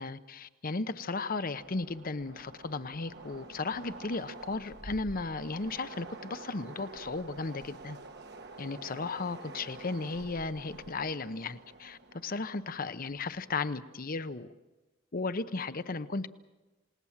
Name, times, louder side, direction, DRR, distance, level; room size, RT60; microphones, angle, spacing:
voice 1, 0.0-8.0 8.6-14.5 15.1-16.3, left 3 dB, 45° left, 12 dB, 0.9 m, -35 dB
Train, 1.6-13.8, right 3 dB, 60° right, 1.4 m, -49 dB
28.0 x 19.0 x 7.3 m, 1.1 s
head